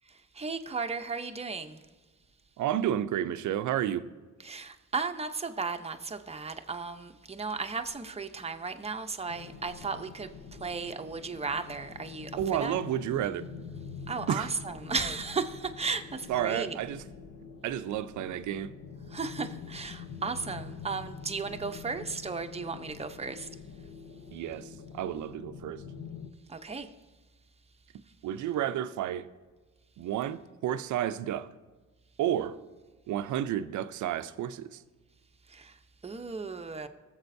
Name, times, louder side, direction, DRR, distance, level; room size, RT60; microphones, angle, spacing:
voice 1, 0.4-1.8 4.4-10.3 10.6-12.8 14.1-16.8 19.1-23.5 26.5-26.9 35.5-35.7 36.0-36.9, right 4 dB, 20° right, 0.8 m, -35 dB
voice 2, 2.6-4.1 12.4-13.4 14.3-14.5 16.3-17.0 17.6-18.7 24.3-25.8 28.2-29.3 30.0-31.5 32.2-32.6 33.1-34.8, right 11 dB, 75° right, 0.6 m, -31 dB
sound 1, 9.3-26.3, left 6 dB, 50° left, 1.0 m, -46 dB
20.0 x 7.4 x 2.7 m
cardioid pair, 90°, 30 cm